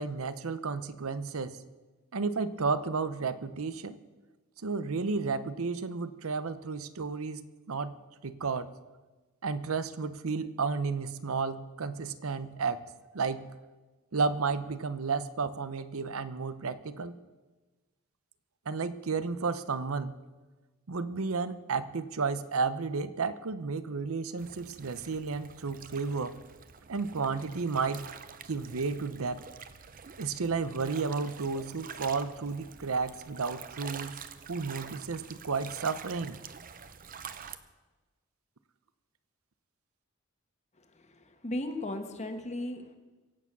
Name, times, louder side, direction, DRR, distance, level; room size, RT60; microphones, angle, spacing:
voice 1, 0.0-1.6 2.1-4.0 4.6-7.9 8.2-8.7 9.4-12.8 13.1-13.5 14.1-17.1 18.7-20.1 20.9-26.4 26.9-28.1 28.4-29.4 30.2-34.1 34.5-36.4, right 4 dB, 85° right, 13 dB, 0.7 m, -32 dB
sound 1, 24.4-37.6, right 7 dB, 40° right, 0.7 m, -47 dB
voice 2, 41.1-43.0, left 1 dB, 35° left, 6 dB, 1.4 m, -36 dB
23.5 x 8.4 x 6.0 m, 1.2 s
head